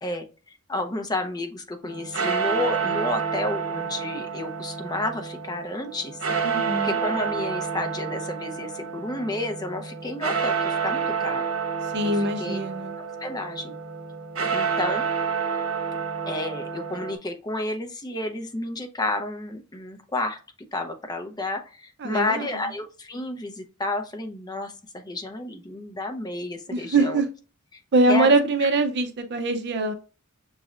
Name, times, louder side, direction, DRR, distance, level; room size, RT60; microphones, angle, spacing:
voice 1, 0.0-6.2 6.8-11.4 12.0-12.6 13.2-13.7 14.5-15.0 16.3-20.4 20.7-27.2 27.7-27.8 28.1-28.3, left 2 dB, 20° left, 0.6 m, -31 dB
sound 1, 1.8-17.1, right 6 dB, 85° right, 1.0 m, -29 dB
voice 2, 6.4-7.0 11.8-12.9 22.0-22.7 26.7-27.3 27.9-29.9, right 2 dB, 55° right, 0.5 m, -23 dB
6.1 x 3.1 x 2.4 m
head